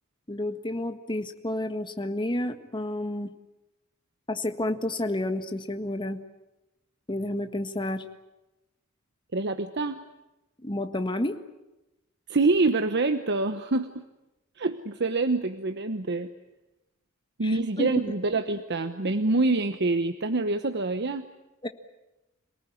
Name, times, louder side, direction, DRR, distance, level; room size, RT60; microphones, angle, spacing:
voice 1, 0.3-3.3 4.3-6.2 7.1-8.0 10.6-11.4 17.4-17.9 21.6-21.7, left 1 dB, 25° left, 8 dB, 1.6 m, -30 dB
voice 2, 9.3-10.0 12.3-14.0 14.6-16.3 17.4-21.3, right 3 dB, 55° right, 9 dB, 1.0 m, -26 dB
27.5 x 19.0 x 10.0 m, 1.0 s
head